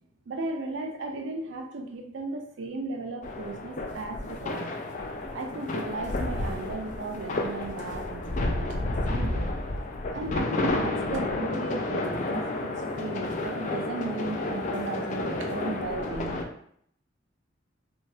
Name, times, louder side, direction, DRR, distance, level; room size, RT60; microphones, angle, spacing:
voice 1, 0.3-4.7 5.3-9.5 10.1-16.4, right 3 dB, 80° right, 3 dB, 0.5 m, -35 dB
sound 1, 3.2-16.4, left 2 dB, 40° left, 0.3 m, -31 dB
3.0 x 2.2 x 2.7 m, 0.68 s
head